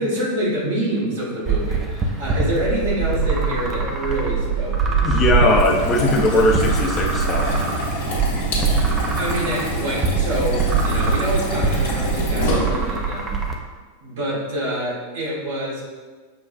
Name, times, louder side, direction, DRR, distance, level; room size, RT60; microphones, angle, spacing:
voice 1, 0.0-5.1 9.1-13.4 14.0-15.8, equal, 55° right, -5 dB, 1.2 m, -26 dB
sound 1, 1.5-13.5, right 5 dB, 20° right, 0.5 m, -23 dB
voice 2, 5.0-7.7, left 2 dB, 20° left, 0 dB, 0.6 m, -20 dB
sound 2, 5.4-13.0, right 1 dB, 55° left, 1.0 m, -25 dB
5.7 x 2.3 x 2.5 m, 1.4 s
figure-of-eight pair, 90°, 0 cm